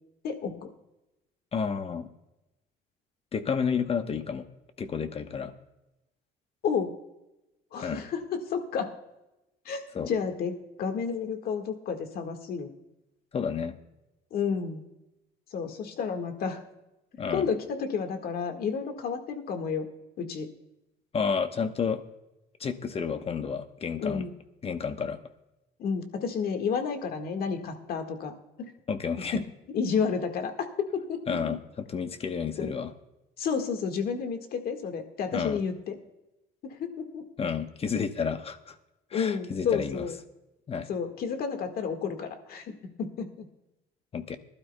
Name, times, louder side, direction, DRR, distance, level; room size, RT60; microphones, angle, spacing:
voice 1, 0.2-0.7 6.6-6.9 7.7-8.9 9.6-12.7 14.3-14.8 15.5-16.6 17.3-19.8 20.2-20.5 24.0-24.3 25.8-28.3 28.6-28.7 29.3-29.4 29.7-31.5 32.6-32.7 33.4-36.0 36.6-37.2 39.1-40.2 40.9-43.5, left 6 dB, 65° left, 5 dB, 1.7 m, -31 dB
voice 2, 1.5-2.1 3.3-4.5 4.8-5.5 7.8-8.0 9.9-10.1 13.3-13.7 17.2-17.5 21.1-22.0 22.6-24.2 24.6-25.2 28.9-29.4 31.3-32.9 35.3-35.6 37.4-38.7 39.1-40.0 40.7-40.9 44.1-44.4, left 6 dB, 35° left, 9 dB, 1.1 m, -31 dB
20.5 x 12.0 x 2.3 m, 0.95 s
cardioid pair, 110°, 17 cm